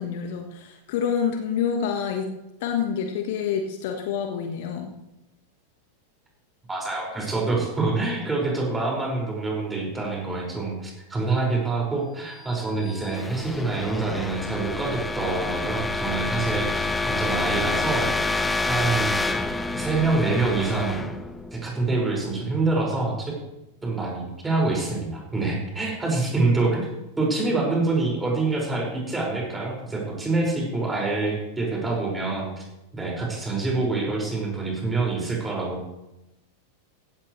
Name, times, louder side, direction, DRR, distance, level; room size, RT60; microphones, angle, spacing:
voice 1, 0.0-2.3 2.6-4.9, left 7 dB, 50° left, 5 dB, 1.5 m, -27 dB
voice 2, 6.7-18.1 18.7-19.2 19.7-21.1 21.5-23.3 23.8-26.9 27.2-32.6 32.9-35.9, right 3 dB, 10° right, -2 dB, 5.6 m, -26 dB
sound 1, 12.5-22.2, left 3 dB, 10° left, 0.8 m, -28 dB
16.0 x 14.5 x 3.3 m, 0.94 s
figure-of-eight pair, 90°, 0 cm